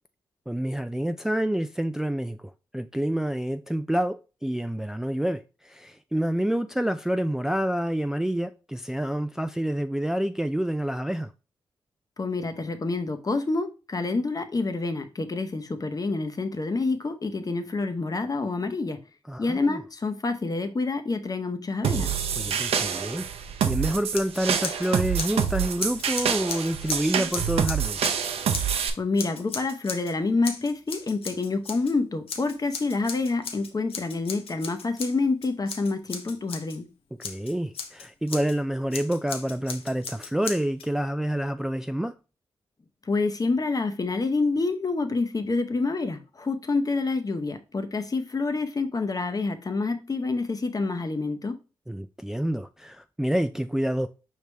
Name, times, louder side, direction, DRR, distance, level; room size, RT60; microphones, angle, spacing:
voice 1, 0.5-11.3 19.3-19.8 22.4-23.3 23.7-28.0 37.2-42.1 51.9-54.1, right 1 dB, 5° right, 0.3 m, -28 dB
voice 2, 12.2-19.0 19.4-22.1 29.0-36.9 43.1-51.6, left 3 dB, 40° left, 0.8 m, -27 dB
sound 1, 21.8-28.9, right 8 dB, 85° right, 0.5 m, -27 dB
Scissors, 24.1-24.9 25.1-28.8 29.2-30.1 30.4-31.9 32.3-36.8 37.2-38.5 38.9-40.9, left 5 dB, 70° left, 0.7 m, -37 dB
4.9 x 3.3 x 3.3 m
supercardioid pair, 45°, 10 cm